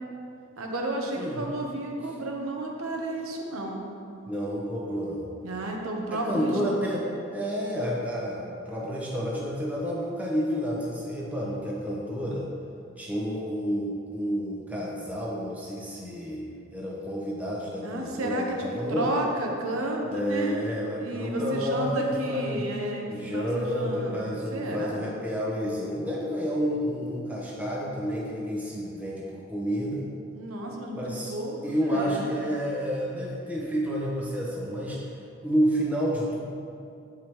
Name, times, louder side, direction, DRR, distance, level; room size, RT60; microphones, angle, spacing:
voice 1, 0.6-3.8 5.4-6.6 17.8-20.5 21.0-24.2 24.5-25.1 30.3-31.0 31.3-32.3, right 1 dB, 85° right, 1 dB, 0.9 m, -32 dB
voice 2, 4.3-5.3 6.1-12.5 13.0-19.1 20.1-22.6 23.1-30.1 30.9-31.3 31.6-35.0 35.4-36.4, equal, 5° right, -5 dB, 0.9 m, -30 dB
8.9 x 4.9 x 3.1 m, 2.5 s
head